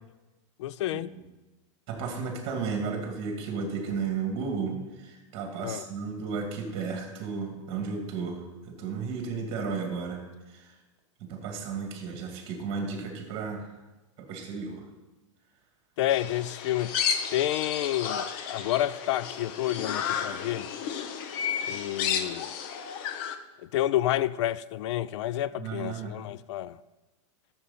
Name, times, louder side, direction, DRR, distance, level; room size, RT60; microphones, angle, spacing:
voice 1, 0.6-1.1 5.6-5.9 16.0-16.9 17.3-20.7 21.7-22.5 23.6-26.8, left 13 dB, 65° left, 0.4 m, -29 dB
voice 2, 1.9-10.2 10.5-10.7 11.2-13.7 14.2-14.9 25.6-26.2, right 5 dB, 30° right, 2.4 m, -33 dB
sound 1, 16.1-23.4, left 7 dB, 45° left, 0.8 m, -32 dB
12.5 x 7.1 x 4.3 m
supercardioid pair, 155°, 17 cm